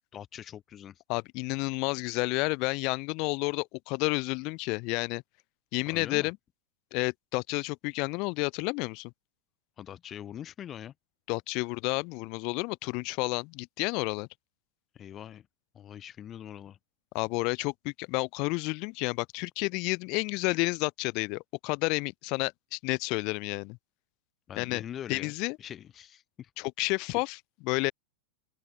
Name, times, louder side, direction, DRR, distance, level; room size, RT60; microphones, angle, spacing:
voice 1, 0.1-1.0 5.9-6.3 9.8-10.9 14.9-15.5 15.7-16.8 24.5-25.3 25.6-26.7, left 10 dB, 25° left, 6.8 m, -43 dB
voice 2, 1.1-5.2 5.7-6.4 6.9-9.1 11.3-14.3 17.1-23.8 24.6-24.8 25.1-25.6 26.6-27.4 27.6-27.9, left 28 dB, 45° left, 0.8 m, -30 dB
open air
figure-of-eight pair, 90°, 0 cm